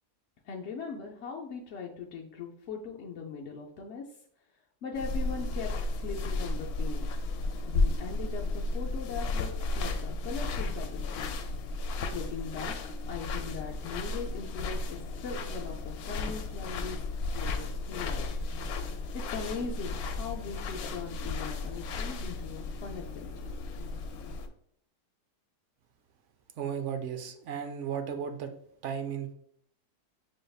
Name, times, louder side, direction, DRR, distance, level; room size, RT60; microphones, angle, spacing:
voice 1, 0.4-4.0 4.8-7.1 7.7-11.4 12.1-12.7 13.1-17.0 17.3-18.3 19.1-23.3, left 5 dB, 65° left, -2 dB, 0.7 m, -40 dB
sound 1, 4.9-24.5, left 3 dB, 80° left, 1.1 m, -34 dB
voice 2, 26.6-28.5 28.8-29.3, right 7 dB, 65° right, 7 dB, 0.8 m, -35 dB
6.3 x 3.3 x 2.3 m, 0.67 s
omnidirectional pair, 1.6 m